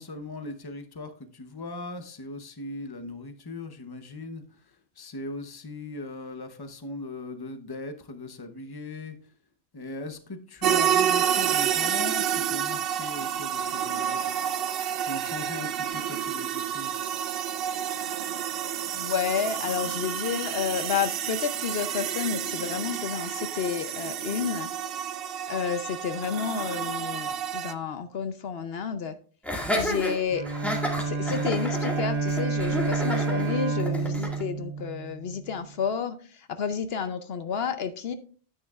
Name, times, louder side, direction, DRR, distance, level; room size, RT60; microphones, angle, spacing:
voice 1, 0.0-9.3 9.7-14.3 15.0-16.9, left 2 dB, 25° left, 8 dB, 0.8 m, -39 dB
sound 1, 10.6-27.7, right 9 dB, 65° right, 0.7 m, -29 dB
voice 2, 18.9-24.7 25.5-29.2 29.7-30.4 31.0-38.1, left 6 dB, 70° left, 10 dB, 0.9 m, -30 dB
Laughter, 29.4-34.4, equal, ahead, 1.9 m, -31 dB
Bowed string instrument, 30.3-35.5, right 4 dB, 85° right, 1.4 m, -29 dB
9.8 x 9.3 x 2.4 m, 0.40 s
omnidirectional pair, 1.1 m